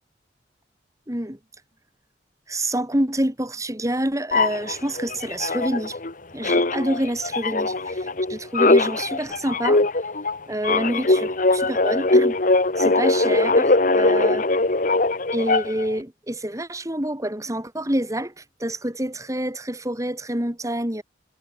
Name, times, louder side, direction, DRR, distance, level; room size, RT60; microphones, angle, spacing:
voice 1, 1.1-1.4 2.5-6.0 6.3-9.9 10.5-12.4 12.8-14.4 15.3-21.0, right 1 dB, 20° right, 3.2 m, -27 dB
sound 1, 4.3-6.1 6.4-15.9, left 2 dB, 45° left, 1.4 m, -21 dB
head